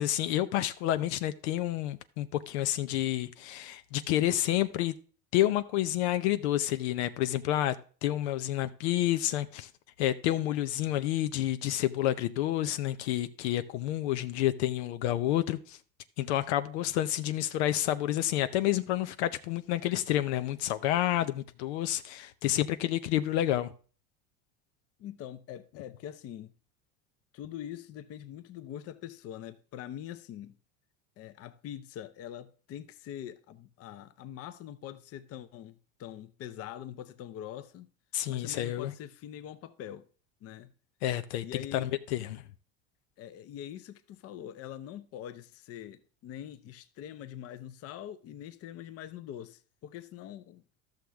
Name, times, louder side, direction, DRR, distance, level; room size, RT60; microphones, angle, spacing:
voice 1, 0.0-4.9 5.3-7.8 8.0-9.7 10.0-15.8 16.2-23.7 38.1-38.9 41.0-42.4, left 13 dB, 85° left, 0.7 m, -29 dB
voice 2, 25.0-26.5 27.3-30.6 31.2-37.9 38.3-40.0 40.4-40.7 41.4-41.9 43.2-50.6, left 11 dB, 45° left, 0.8 m, -43 dB
13.0 x 6.4 x 3.5 m
supercardioid pair, 125°, 32 cm